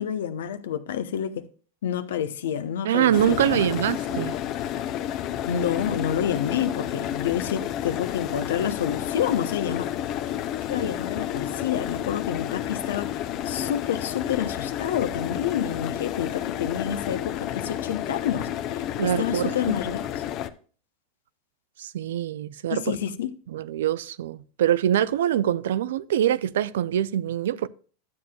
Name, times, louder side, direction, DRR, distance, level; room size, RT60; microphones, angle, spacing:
voice 1, 0.0-1.5 1.8-3.8 5.5-9.9 10.7-13.1 13.4-20.2 22.7-23.3, left 9 dB, 85° left, 0.7 m, -28 dB
voice 2, 2.8-4.4 19.0-19.5 21.8-22.8 23.5-27.7, right 11 dB, 85° right, 0.4 m, -24 dB
sound 1, 3.1-20.5, left 11 dB, 50° left, 0.7 m, -31 dB
12.0 x 7.8 x 2.3 m
hypercardioid pair, 110°, 0 cm